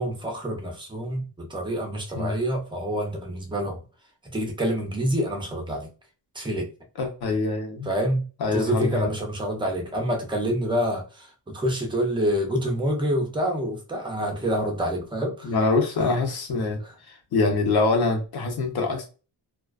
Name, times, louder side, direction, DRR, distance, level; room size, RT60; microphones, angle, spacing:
voice 1, 0.0-3.8 4.3-5.9 6.3-6.7 7.8-8.2 8.5-15.5 16.8-16.9, equal, 10° right, 2 dB, 0.5 m, -27 dB
voice 2, 7.0-7.9 8.4-9.1 15.4-16.8 17.1-19.1, left 3 dB, 60° left, 3 dB, 0.8 m, -24 dB
2.4 x 2.2 x 2.3 m, 0.34 s
wide cardioid pair, 155°, 43 cm